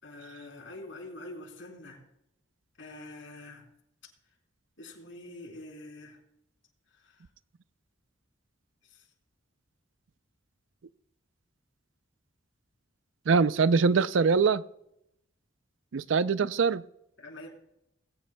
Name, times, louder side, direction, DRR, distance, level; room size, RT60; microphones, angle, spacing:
voice 1, 0.0-2.0 2.8-3.6 4.8-6.2 7.0-7.1 8.9-9.1 17.2-17.5, left 2 dB, 75° left, 1 dB, 3.6 m, -45 dB
voice 2, 13.3-14.6 15.9-16.8, right 5 dB, 75° right, 16 dB, 0.5 m, -23 dB
19.5 x 17.0 x 2.2 m, 0.81 s
head